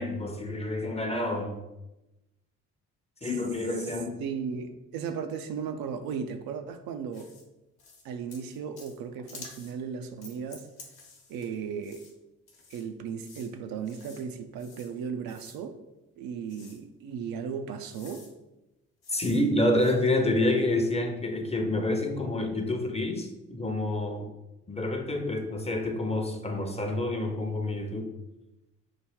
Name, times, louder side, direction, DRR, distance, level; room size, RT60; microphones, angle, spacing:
voice 1, 0.0-1.6 3.2-4.2 19.1-24.3 24.7-28.1, left 1 dB, 15° left, 5 dB, 0.6 m, -28 dB
voice 2, 4.2-7.3 8.0-10.7 11.3-12.1 12.7-15.8 16.2-18.3, right 6 dB, 70° right, 7 dB, 0.5 m, -36 dB
sound 1, 7.1-7.4 7.8-8.0 8.3-9.0 9.3-9.7 10.2-11.5 11.8-12.1 12.5-12.8 13.2-13.5 13.8-14.2 14.6-14.9 15.3-15.6 16.5-16.8 17.5-17.6 17.9-18.3 19.0-19.4 19.7-19.9, left 3 dB, 70° left, 1.0 m, -50 dB
4.7 x 2.2 x 3.5 m, 0.98 s
hypercardioid pair, 45°, 38 cm